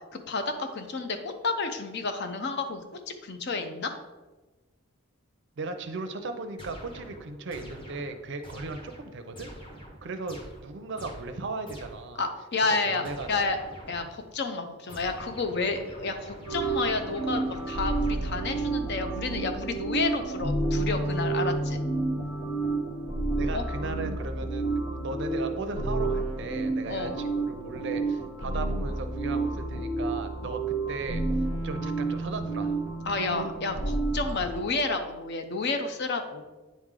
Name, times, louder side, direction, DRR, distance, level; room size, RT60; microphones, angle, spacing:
voice 1, 0.3-3.9 12.2-13.6 13.9-21.8 23.5-23.6 26.9-27.1 33.1-36.4, left 3 dB, 50° left, 6 dB, 0.6 m, -30 dB
voice 2, 5.6-9.5 10.0-12.2 12.9-13.5 23.4-30.6 30.9-31.2 31.6-32.8, right 3 dB, 55° right, 8 dB, 0.5 m, -37 dB
sound 1, 6.6-12.2 13.0-14.3 14.9-18.6, equal, 25° left, 1.0 m, -46 dB
sound 2, 16.5-34.6, right 2 dB, 80° left, 1.3 m, -30 dB
9.2 x 3.2 x 3.7 m, 1.2 s
head